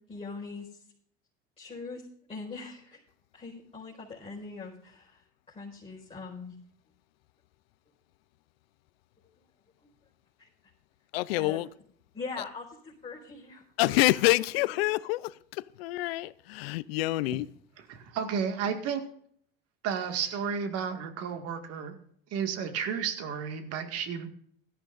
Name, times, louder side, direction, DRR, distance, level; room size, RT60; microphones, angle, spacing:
voice 1, 0.1-0.8 1.6-3.0 3.3-5.2 5.5-6.6 9.2-9.3 10.4-10.5 11.3-11.6 12.1-13.6, left 4 dB, 20° left, 4.9 m, -42 dB
voice 2, 11.1-11.7 13.8-17.5, left 18 dB, 85° left, 0.6 m, -27 dB
voice 3, 17.8-19.0 19.8-22.0 22.3-24.3, right 7 dB, 55° right, 2.0 m, -32 dB
17.0 x 13.5 x 2.6 m
supercardioid pair, 95°, 29 cm